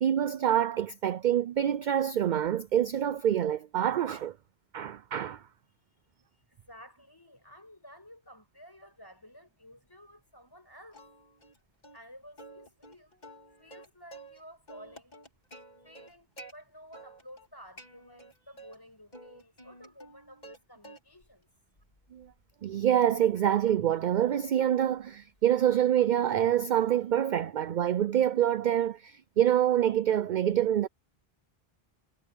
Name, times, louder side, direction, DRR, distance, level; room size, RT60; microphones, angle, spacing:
voice 1, 0.0-4.4 4.7-5.4 22.1-22.3 22.6-30.9, right 10 dB, 55° right, 0.6 m, -26 dB
voice 2, 6.2-11.1 11.9-15.2 15.8-21.5, equal, 20° left, 6.6 m, -53 dB
Plucked string instrument, 10.9-11.6 11.8-12.0 12.4-14.4 14.7-16.5 16.9-17.5 17.8-18.8 19.1-20.6 20.8-21.3 21.8-26.0, right 1 dB, 40° left, 2.6 m, -51 dB
omnidirectional pair, 1.1 m